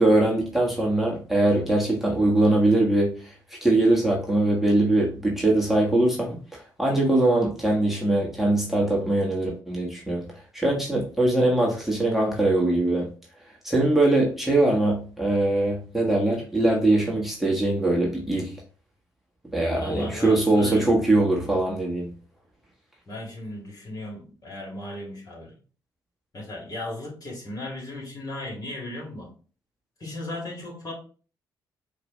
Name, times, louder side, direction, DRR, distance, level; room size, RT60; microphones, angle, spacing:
voice 1, 0.0-3.3 3.6-10.2 10.5-13.1 13.6-18.5 19.5-22.1, right 2 dB, 5° right, -3 dB, 1.3 m, -22 dB
voice 2, 19.7-20.9 23.1-25.5 26.3-29.3 30.0-30.9, left 1 dB, 40° left, -3 dB, 2.2 m, -36 dB
4.6 x 2.6 x 3.1 m, 0.39 s
hypercardioid pair, 45°, 10 cm